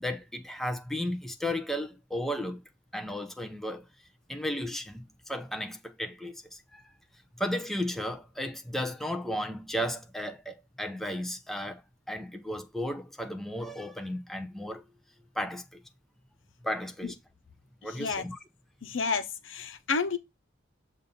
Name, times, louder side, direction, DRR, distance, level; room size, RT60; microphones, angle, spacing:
voice 1, 0.0-2.6 2.9-3.9 4.3-6.8 7.4-11.8 12.1-14.8 15.4-15.8 16.6-17.1 17.8-18.4, equal, ahead, 0.7 m, -34 dB
voice 2, 18.8-20.2, left 5 dB, 75° left, 0.9 m, -30 dB
7.4 x 2.7 x 5.3 m
head